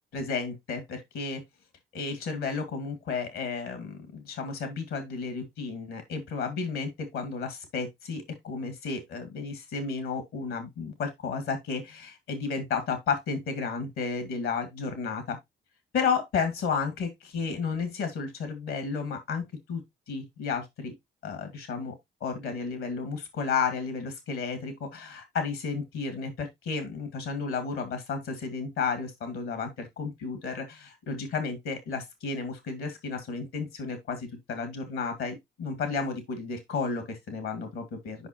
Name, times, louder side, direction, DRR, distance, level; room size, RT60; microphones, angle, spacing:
voice 1, 0.1-1.4 1.9-15.4 15.9-19.8 20.1-20.9 21.2-21.9 22.2-38.3, left 5 dB, 80° left, 2.1 m, -32 dB
7.9 x 5.6 x 2.9 m
supercardioid pair, 50°, 21 cm